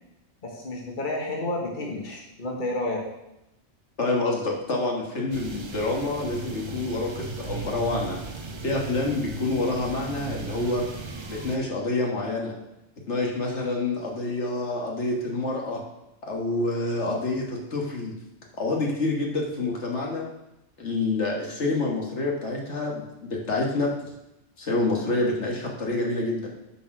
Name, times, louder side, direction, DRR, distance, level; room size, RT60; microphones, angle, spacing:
voice 1, 0.4-3.0, left 2 dB, 40° left, 0 dB, 1.4 m, -30 dB
voice 2, 4.0-8.2 8.6-10.8 11.3-12.6 13.1-15.8 16.2-18.1 18.6-20.3 20.8-23.9 24.6-26.5, left 2 dB, 65° left, -1 dB, 1.8 m, -27 dB
sound 1, 5.3-11.6, right 3 dB, 30° right, 0.6 m, -36 dB
10.0 x 4.4 x 6.0 m, 0.91 s
omnidirectional pair, 1.3 m